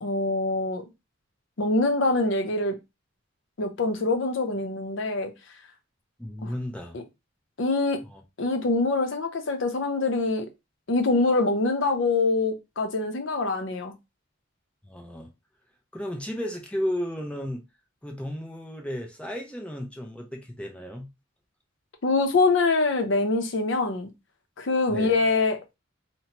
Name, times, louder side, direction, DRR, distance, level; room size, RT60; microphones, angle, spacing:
voice 1, 0.0-0.8 1.6-2.7 3.6-5.3 6.4-6.5 6.9-7.0 7.6-8.0 8.4-10.5 10.9-13.9 22.0-24.1 24.6-25.6, left 3 dB, 65° left, 0.6 m, -24 dB
voice 2, 6.2-7.0 8.1-8.2 14.9-15.3 15.9-17.6 18.0-21.1 24.9-25.1, equal, 5° left, 0.5 m, -33 dB
2.8 x 2.1 x 2.8 m
head